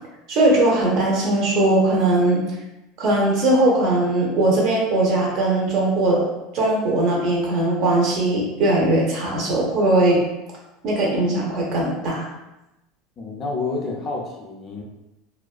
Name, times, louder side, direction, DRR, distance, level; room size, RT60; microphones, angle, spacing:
voice 1, 0.3-2.4 3.0-6.2 6.5-10.2 10.8-12.3, right 2 dB, 50° right, -2 dB, 0.7 m, -19 dB
voice 2, 13.2-14.8, left 3 dB, 30° left, -1 dB, 0.4 m, -29 dB
2.4 x 2.2 x 2.3 m, 0.96 s
supercardioid pair, 145°, 0 cm